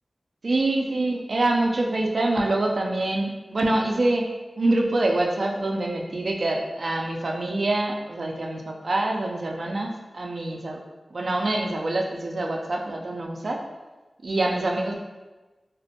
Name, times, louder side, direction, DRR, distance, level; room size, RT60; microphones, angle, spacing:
voice 1, 0.4-4.3 4.6-10.8 11.1-13.6 14.2-15.0, right 2 dB, 65° right, 1 dB, 0.4 m, -25 dB
3.5 x 2.1 x 2.7 m, 1.2 s
cardioid pair, 45°, 0 cm